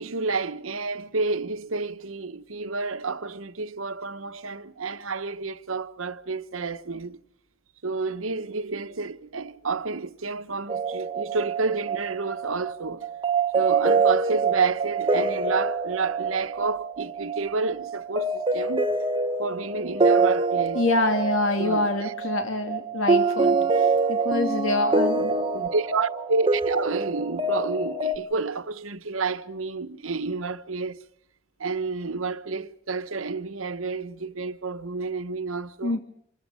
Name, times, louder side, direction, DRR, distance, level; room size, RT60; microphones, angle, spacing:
voice 1, 0.0-7.2 7.8-13.1 13.5-18.9 19.4-20.8 21.6-22.1 23.6-23.7 25.5-31.0 31.6-36.0, right 4 dB, 80° right, 1.1 m, -30 dB
sound 1, 10.7-28.2, right 4 dB, 25° right, 1.1 m, -25 dB
voice 2, 20.7-25.3 35.8-36.0, left 2 dB, 75° left, 2.5 m, -26 dB
26.5 x 14.5 x 9.6 m
head